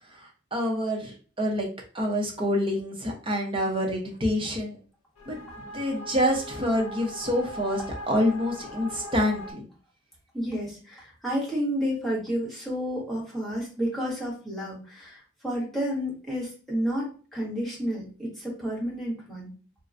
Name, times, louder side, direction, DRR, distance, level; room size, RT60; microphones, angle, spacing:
voice 1, 0.5-1.7 1.9-4.8 5.3-7.8 8.1-9.7, equal, 25° right, 1 dB, 0.7 m, -27 dB
sound 1, 5.2-9.5, equal, 85° left, 0.6 m, -40 dB
voice 2, 10.3-19.5, equal, ahead, -5 dB, 1.1 m, -31 dB
3.7 x 2.1 x 2.5 m, 0.38 s
head